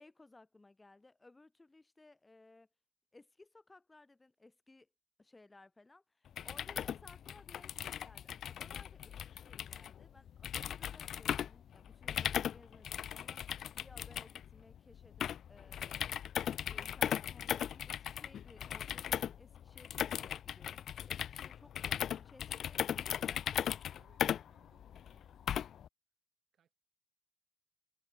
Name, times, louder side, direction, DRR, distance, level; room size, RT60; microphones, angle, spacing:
voice 1, 0.0-2.7 3.1-4.9 5.2-13.4 13.7-16.0 16.6-23.4, left 2 dB, 20° left, 4.7 m, -60 dB
sound 1, 6.3-25.9, left 9 dB, 65° left, 0.4 m, -38 dB
voice 2, 24.0-25.7 26.5-26.7, right 9 dB, 60° right, 6.6 m, -73 dB
cardioid pair, 90°, 0 cm